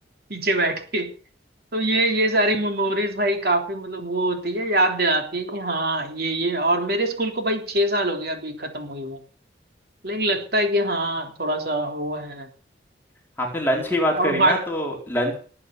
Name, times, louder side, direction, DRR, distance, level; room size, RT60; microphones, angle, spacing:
voice 1, 0.3-1.1 1.7-9.2 10.0-12.5 14.1-14.6, right 1 dB, 55° right, 4 dB, 3.4 m, -24 dB
voice 2, 13.4-15.3, equal, 10° left, -1 dB, 4.2 m, -24 dB
20.0 x 8.5 x 6.9 m, 0.41 s
head